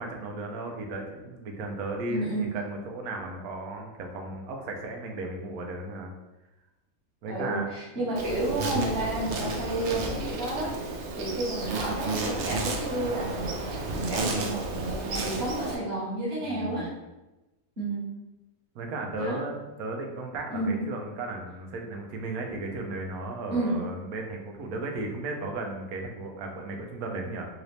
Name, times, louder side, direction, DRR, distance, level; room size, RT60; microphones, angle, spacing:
voice 1, 0.0-6.1 7.2-7.7 16.4-16.9 18.7-27.5, right 2 dB, 85° right, 2 dB, 1.1 m, -35 dB
voice 2, 2.1-2.5 7.3-10.7 11.2-16.9 17.8-18.1 19.2-19.4 20.5-20.8 23.5-23.8, right 1 dB, 45° right, -6 dB, 1.5 m, -31 dB
Insect, 8.2-15.8, right 3 dB, 65° right, 0.8 m, -32 dB
3.9 x 2.6 x 3.2 m, 1.0 s
omnidirectional pair, 1.5 m